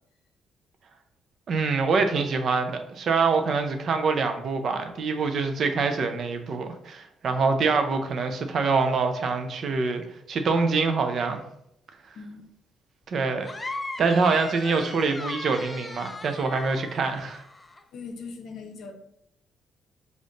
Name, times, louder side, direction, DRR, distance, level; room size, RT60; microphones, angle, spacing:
voice 1, 1.5-11.4 13.1-13.5 14.0-17.4, right 4 dB, 60° right, 6 dB, 0.6 m, -25 dB
voice 2, 12.1-12.5 17.9-18.9, left 4 dB, 75° left, 3 dB, 0.6 m, -40 dB
sound 1, 13.4-17.8, left 2 dB, 20° left, 0.4 m, -38 dB
5.2 x 2.6 x 3.8 m, 0.78 s
cardioid pair, 90°, 0 cm